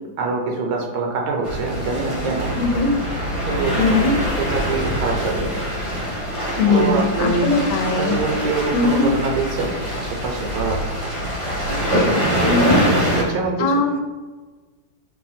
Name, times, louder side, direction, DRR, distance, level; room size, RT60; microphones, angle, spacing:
voice 1, 0.2-2.5 3.4-3.8 4.4-5.5 6.7-7.5 8.0-10.8 12.6-13.8, right 4 dB, 70° right, 1 dB, 1.3 m, -24 dB
sound 1, 1.4-13.2, equal, 25° right, 0.7 m, -24 dB
voice 2, 2.6-2.9 3.8-4.1 6.6-8.2 8.7-9.1 12.4-12.8 13.6-14.0, left 3 dB, 85° left, 4 dB, 1.4 m, -19 dB
5.5 x 2.2 x 4.1 m, 1.3 s
omnidirectional pair, 2.1 m